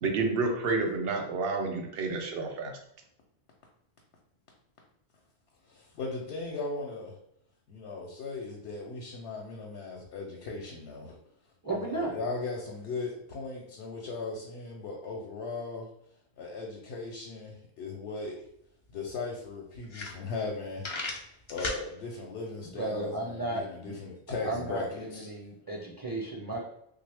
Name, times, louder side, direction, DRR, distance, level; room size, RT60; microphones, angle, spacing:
voice 1, 0.0-2.7, right 3 dB, 65° right, 4 dB, 0.8 m, -29 dB
voice 2, 5.7-7.2 7.7-11.2 11.7-15.9 16.4-18.4 18.9-20.9 21.5-25.3, left 3 dB, 75° left, -1 dB, 0.8 m, -37 dB
voice 3, 11.6-12.1 22.8-23.9 24.4-26.6, right 2 dB, 25° right, -4 dB, 0.5 m, -34 dB
sound 1, 18.5-18.6 18.9-19.0 19.5-19.6 19.8-20.5 20.8-21.8, left 3 dB, 50° left, 0.3 m, -35 dB
3.1 x 2.1 x 3.3 m, 0.75 s
omnidirectional pair, 1.1 m